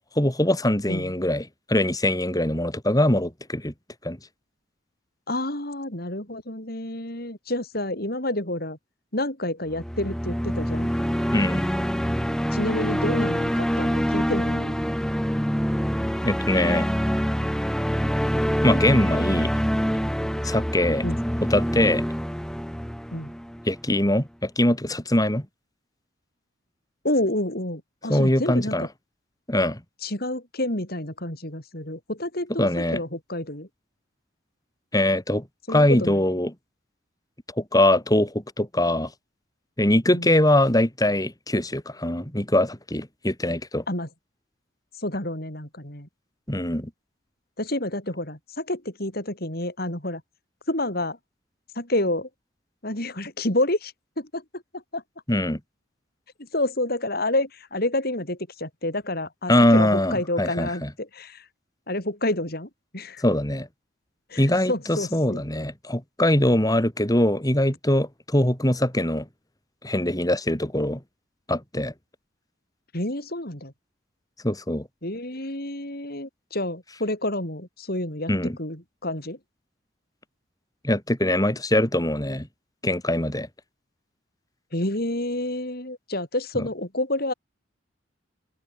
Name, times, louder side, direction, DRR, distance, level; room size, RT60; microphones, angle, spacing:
voice 1, 0.2-3.7 4.0-4.2 11.3-11.7 16.2-16.9 18.6-19.5 20.4-21.0 21.5-22.0 23.7-25.5 28.1-28.9 29.5-29.8 32.6-33.0 34.9-36.5 37.6-39.1 39.8-43.8 46.5-46.9 55.3-55.6 59.5-60.9 63.2-63.7 64.4-69.3 69.8-71.0 71.5-71.9 74.4-74.9 78.3-78.6 80.8-82.5 82.8-83.5 86.6-86.7, left 1 dB, 20° left, 4.3 m, -22 dB
voice 2, 5.3-8.8 9.1-10.9 12.5-14.8 21.0-21.2 23.1-23.3 27.0-28.9 30.0-33.7 35.7-36.2 40.1-40.4 43.9-44.1 45.0-46.1 47.6-50.2 50.7-51.2 51.7-52.3 52.8-55.0 56.4-61.5 61.9-63.2 64.3-65.4 72.9-73.7 75.0-79.4 84.7-87.3, left 1 dB, 55° left, 7.8 m, -29 dB
sound 1, 9.7-23.9, equal, 5° left, 2.3 m, -26 dB
open air
head